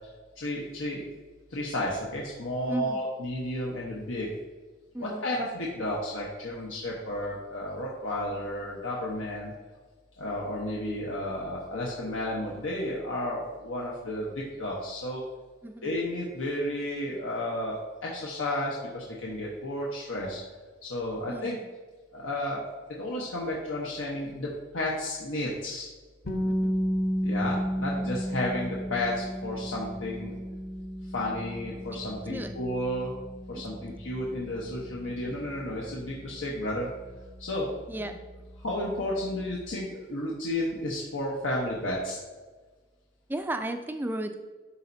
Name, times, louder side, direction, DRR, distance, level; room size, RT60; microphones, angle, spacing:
voice 1, 0.4-1.0 1.5-4.3 5.0-9.5 10.2-15.2 15.8-20.4 20.8-21.5 22.1-22.6 23.0-24.5 24.7-25.9 27.2-30.4 31.1-33.1 33.5-36.9 37.4-37.7 38.0-38.1 38.6-42.2, left 1 dB, 90° left, -4 dB, 1.1 m, -32 dB
voice 2, 2.6-3.0 4.9-5.2 15.6-15.9 21.3-21.5 26.4-26.8 31.9-32.0 32.3-32.5 33.5-33.6 35.1-35.5 37.9-38.1 43.3-44.4, right 1 dB, 10° right, 7 dB, 0.4 m, -34 dB
sound 1, 26.3-38.1, equal, 45° left, 0.8 m, -33 dB
11.5 x 4.2 x 2.7 m, 1.3 s
head